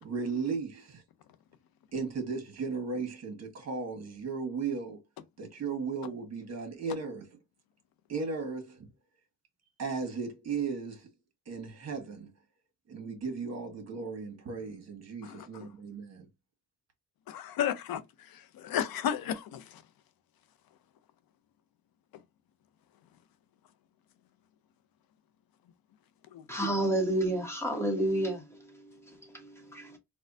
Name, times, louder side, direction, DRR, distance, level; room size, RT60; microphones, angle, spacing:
voice 1, 0.0-1.0 1.9-5.0 5.4-7.3 8.1-8.9 9.8-11.1 11.5-12.3 12.9-16.3, right 4 dB, 45° right, 1.5 m, -36 dB
voice 2, 17.3-19.8 26.3-26.4, left 9 dB, 70° left, 0.6 m, -33 dB
voice 3, 26.5-30.0, right 1 dB, 5° left, 1.3 m, -31 dB
4.2 x 2.3 x 2.6 m
cardioid pair, 105°, 37 cm